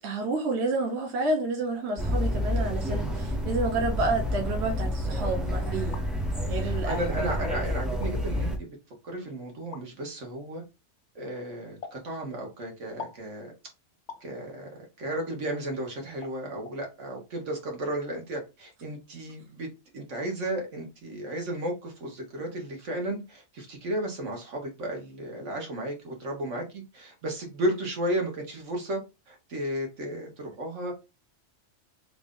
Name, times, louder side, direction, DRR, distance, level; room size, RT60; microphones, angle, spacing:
voice 1, 0.0-6.0 6.5-7.1 7.4-7.5, right 2 dB, 65° right, 1.1 m, -29 dB
sound 1, 2.0-8.6, equal, ahead, 0.3 m, -29 dB
voice 2, 2.3-2.7 6.6-8.7 9.0-10.6 11.1-13.5 14.2-19.7 19.9-29.0 29.3-30.9, right 1 dB, 85° right, 1.5 m, -34 dB
sound 2, 5.7-6.1 7.0-7.1 7.9-8.1 9.7-9.9 11.8-12.0 13.0-13.2 14.1-14.3 15.5-15.6 16.2-16.4 16.7-16.8, left 5 dB, 75° left, 0.9 m, -42 dB
3.3 x 2.5 x 3.5 m
omnidirectional pair, 1.2 m